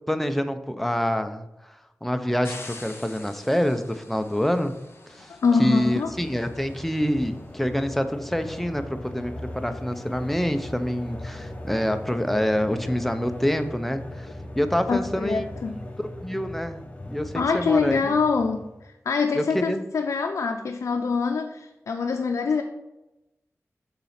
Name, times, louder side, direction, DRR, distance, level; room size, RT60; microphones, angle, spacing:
voice 1, 0.1-1.5 2.0-4.8 5.1-5.3 5.6-14.3 14.6-15.4 16.0-18.0 19.3-19.8, equal, 5° left, 8 dB, 0.6 m, -26 dB
sound 1, 2.4-7.6, left 2 dB, 50° left, 1.4 m, -46 dB
voice 2, 5.3-6.1 14.9-15.8 17.3-22.6, left 4 dB, 85° left, 3 dB, 0.5 m, -25 dB
sound 2, 5.8-18.8, left 1 dB, 25° left, 0.9 m, -39 dB
6.7 x 4.1 x 5.7 m, 0.97 s
wide cardioid pair, 70°, 5 cm